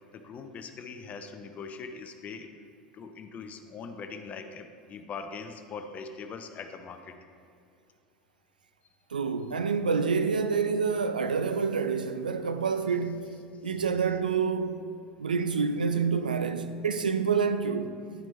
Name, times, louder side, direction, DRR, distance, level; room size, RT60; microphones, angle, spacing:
voice 1, 0.1-2.5 2.9-7.2, left 5 dB, 35° left, 0.6 m, -41 dB
voice 2, 9.1-13.3 13.6-14.8 15.2-18.0, right 5 dB, 80° right, 0.4 m, -27 dB
10.0 x 5.9 x 3.2 m
figure-of-eight pair, 75°, 5 cm